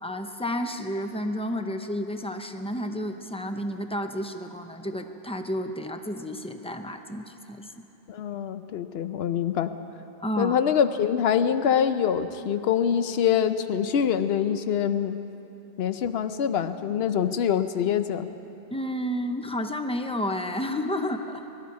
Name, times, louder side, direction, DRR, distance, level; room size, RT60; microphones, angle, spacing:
voice 1, 0.0-7.9 10.2-10.6 18.7-21.5, equal, 10° left, 6 dB, 0.5 m, -31 dB
voice 2, 8.1-9.7 10.4-15.2 15.8-18.3, left 8 dB, 70° left, 11 dB, 0.9 m, -25 dB
21.0 x 12.5 x 4.8 m, 3.0 s
omnidirectional pair, 1.1 m